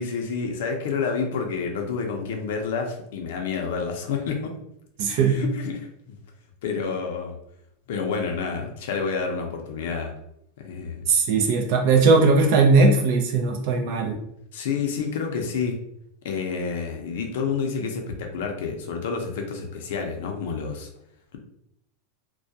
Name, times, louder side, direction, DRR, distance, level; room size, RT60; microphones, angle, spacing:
voice 1, 0.0-4.5 5.2-6.2 6.6-7.4 7.9-10.1 10.6-11.1 14.5-15.8 16.2-20.9, left 5 dB, 70° left, 3 dB, 0.5 m, -29 dB
voice 2, 5.0-5.4 11.1-14.2, right 3 dB, 50° right, 2 dB, 0.4 m, -19 dB
2.3 x 2.1 x 2.7 m, 0.77 s
supercardioid pair, 165°, 0 cm